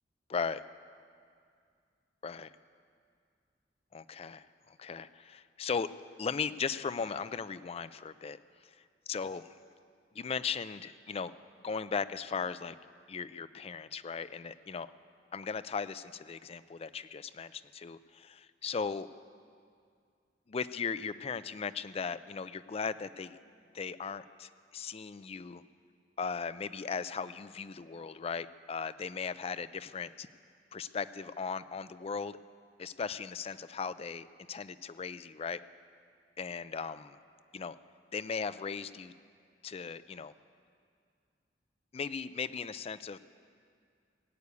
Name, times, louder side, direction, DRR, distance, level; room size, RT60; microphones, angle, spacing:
voice 1, 0.3-0.6 2.2-2.5 3.9-5.9 6.2-8.4 9.1-9.6 10.1-11.3 11.6-12.8 13.1-14.9 15.3-19.1 20.5-23.4 23.7-25.6 26.2-30.3 30.7-32.4 32.8-35.6 36.4-37.2 37.5-37.8 38.1-39.1 39.6-40.3 41.9-43.2, left 5 dB, 35° left, 14 dB, 0.4 m, -37 dB
18.5 x 8.3 x 8.3 m, 2.2 s
head